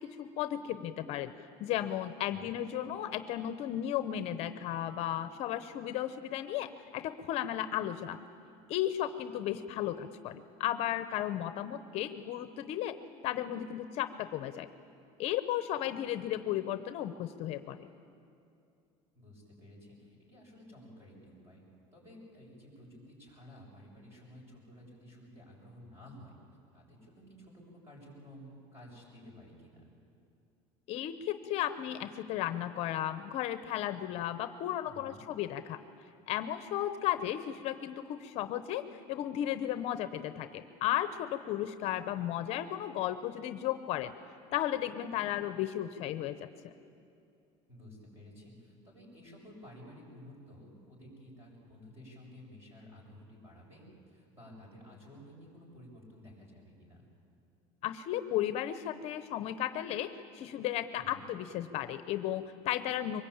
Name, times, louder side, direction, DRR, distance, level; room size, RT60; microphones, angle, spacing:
voice 1, 0.0-1.3 1.6-8.2 8.7-13.0 13.2-14.7 15.2-17.9 30.9-35.8 36.3-44.1 44.5-46.5 57.8-63.2, left 12 dB, 50° left, 11 dB, 0.7 m, -34 dB
voice 2, 2.3-2.6 19.1-21.6 21.9-26.3 26.7-29.9 34.8-35.3 47.7-57.1 60.9-61.3, equal, 20° right, -2 dB, 7.7 m, -53 dB
23.5 x 20.5 x 8.7 m, 2.6 s
cardioid pair, 160°, 13 cm